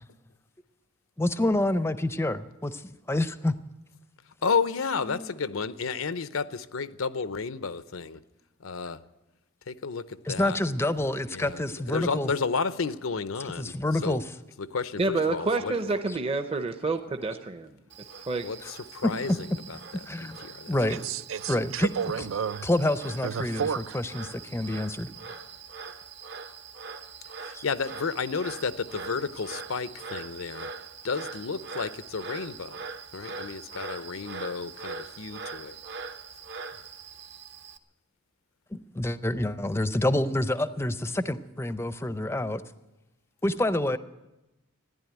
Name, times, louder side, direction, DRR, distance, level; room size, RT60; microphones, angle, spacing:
voice 1, 1.2-3.5 5.1-5.2 10.3-12.3 13.6-14.2 18.6-18.7 20.1-20.4 20.7-21.0 21.5-21.9 22.6-25.1 27.5-27.6 38.7-42.6 43.4-44.0, left 1 dB, 10° left, 0.5 m, -27 dB
voice 2, 4.4-8.2 8.6-9.0 9.7-10.6 11.3-14.2 14.6-15.8 18.4-19.8 20.2-20.8 27.4-30.7 31.0-32.9 33.1-35.8, left 5 dB, 85° left, 0.7 m, -32 dB
voice 3, 15.0-17.7 18.3-18.5, right 3 dB, 30° right, 0.7 m, -28 dB
Frog, 17.9-37.8, right 5 dB, 55° right, 1.0 m, -42 dB
voice 4, 20.9-22.7 23.2-24.0, right 7 dB, 75° right, 0.5 m, -31 dB
15.0 x 10.5 x 9.2 m
head